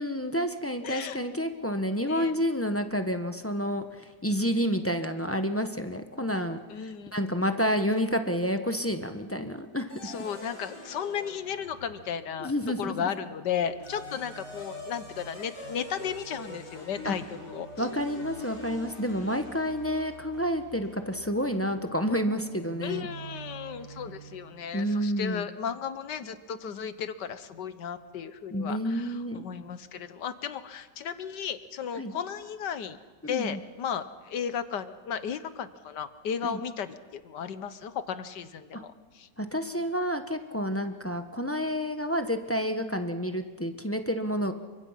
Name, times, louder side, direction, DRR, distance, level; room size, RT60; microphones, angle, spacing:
voice 1, 0.0-3.8 4.2-6.6 7.1-9.9 12.4-13.1 17.0-17.1 17.8-23.1 24.7-25.5 28.5-29.5 32.0-32.1 33.2-33.6 36.4-36.6 38.7-38.8 39.4-44.5, equal, 10° left, 7 dB, 0.9 m, -29 dB
voice 2, 0.8-1.2 2.0-2.3 6.7-7.1 10.0-12.5 12.8-17.9 22.8-33.0 33.2-39.3, left 8 dB, 75° left, 12 dB, 1.7 m, -35 dB
sound 1, 9.9-12.5 13.5-24.7, equal, 45° left, 5.1 m, -45 dB
28.5 x 24.0 x 5.8 m, 1.4 s
omnidirectional pair, 1.9 m